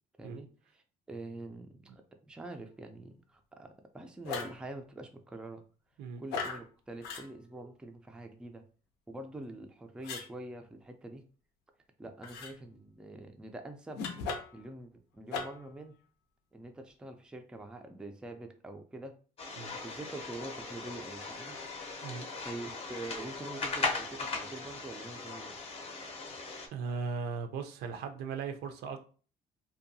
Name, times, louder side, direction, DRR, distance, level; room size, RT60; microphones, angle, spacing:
voice 1, 0.7-5.6 6.2-8.6 9.1-11.2 12.0-14.0 14.5-15.9 16.5-19.1 19.8-21.6 22.4-25.6, right 2 dB, 5° right, 0.3 m, -45 dB
sound 1, 4.2-4.6 6.3-6.6 7.0-7.3 10.0-10.3 12.2-12.5 13.9-14.6 15.3-15.7, left 4 dB, 80° left, 0.5 m, -37 dB
sound 2, 19.4-26.7, left 3 dB, 35° left, 0.6 m, -39 dB
voice 2, 26.7-29.0, right 5 dB, 75° right, 0.5 m, -38 dB
2.6 x 2.2 x 2.6 m
cardioid pair, 110°, 17 cm